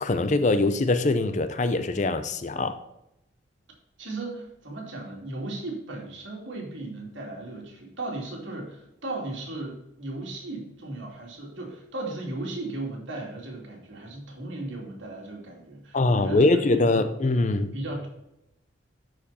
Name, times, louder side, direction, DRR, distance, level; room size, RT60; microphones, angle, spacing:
voice 1, 0.0-2.8 15.9-17.7, left 2 dB, 40° left, 10 dB, 0.6 m, -23 dB
voice 2, 4.0-17.1 17.7-18.1, right 2 dB, 80° right, -1 dB, 2.7 m, -36 dB
12.0 x 4.8 x 4.3 m, 0.85 s
head